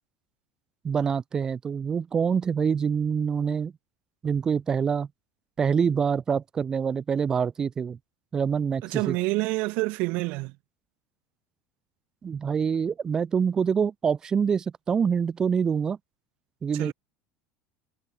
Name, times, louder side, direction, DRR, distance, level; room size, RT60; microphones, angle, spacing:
voice 1, 0.8-3.7 4.2-5.1 5.6-8.0 8.3-9.1 12.2-16.0 16.6-16.9, right 6 dB, 25° right, 0.9 m, -25 dB
voice 2, 8.8-10.5 16.7-16.9, right 25 dB, 60° right, 1.5 m, -27 dB
supercardioid pair, 135°, 3 cm